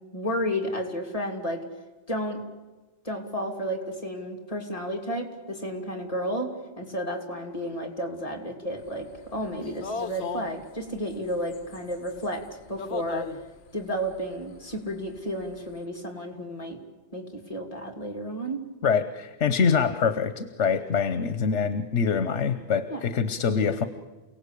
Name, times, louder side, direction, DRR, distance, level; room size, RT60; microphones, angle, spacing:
voice 1, 0.1-1.6 2.1-2.4 3.0-6.5 6.8-13.3 13.7-16.8 17.1-18.6 22.9-23.0, equal, 30° left, 3 dB, 3.0 m, -32 dB
sound 1, 8.8-15.7, left 5 dB, 65° left, 1.2 m, -38 dB
voice 2, 18.8-23.8, left 6 dB, 80° left, 11 dB, 1.3 m, -25 dB
28.5 x 18.0 x 8.4 m, 1.2 s
omnidirectional pair, 1.2 m